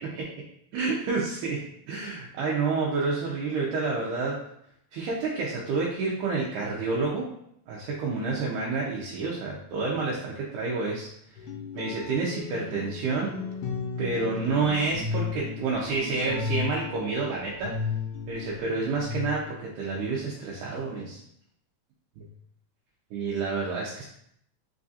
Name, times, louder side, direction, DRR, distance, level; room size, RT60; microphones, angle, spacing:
voice 1, 0.7-4.4 4.9-7.3 7.7-11.1 11.7-13.4 14.0-17.7 18.3-21.2 22.2-22.3 23.1-24.0, right 4 dB, 85° right, -4 dB, 2.1 m, -29 dB
sound 1, 11.4-19.6, left 5 dB, 80° left, 1.8 m, -34 dB
4.9 x 2.4 x 2.6 m, 0.71 s
omnidirectional pair, 3.4 m